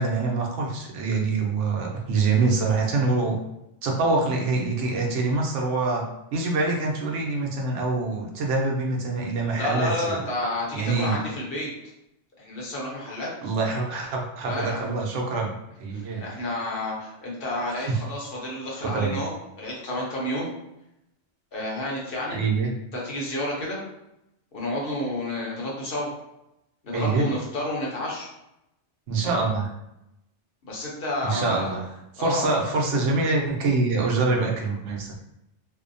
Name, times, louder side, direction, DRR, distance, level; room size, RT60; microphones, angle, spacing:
voice 1, 0.0-3.4 3.8-6.0 6.3-10.2 10.7-11.2 13.4-15.5 15.8-16.2 17.8-18.0 18.8-19.2 22.3-22.7 26.9-27.3 29.1-29.7 31.2-31.9 32.1-35.1, right 3 dB, 85° right, 0 dB, 0.9 m, -25 dB
voice 2, 9.6-11.7 12.4-13.3 14.4-14.9 15.9-20.5 21.5-22.4 22.9-23.8 24.5-26.1 26.8-28.3 30.6-31.7 32.2-32.5, left 1 dB, 55° left, -4 dB, 0.8 m, -30 dB
2.6 x 2.1 x 2.5 m, 0.87 s
omnidirectional pair, 1.2 m